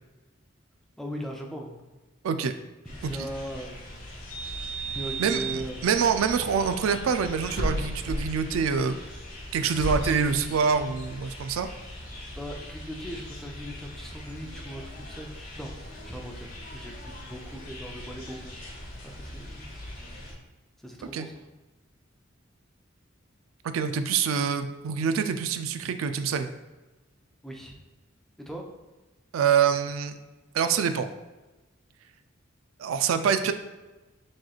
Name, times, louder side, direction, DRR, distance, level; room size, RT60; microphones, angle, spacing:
voice 1, 1.0-2.0 2.8-4.1 4.9-5.9 12.4-15.7 16.0-18.5 19.0-19.7 20.8-21.4 27.4-27.8 28.4-28.6, right 1 dB, ahead, 1 dB, 0.4 m, -39 dB
sound 1, 2.8-20.3, right 1 dB, 45° left, 1.0 m, -37 dB
voice 2, 5.2-9.0 9.5-11.7 21.1-21.3 23.6-26.5 29.3-30.2 30.5-31.1 32.8-33.5, right 6 dB, 90° right, 9 dB, 0.3 m, -25 dB
6.3 x 3.0 x 2.3 m, 1.1 s
head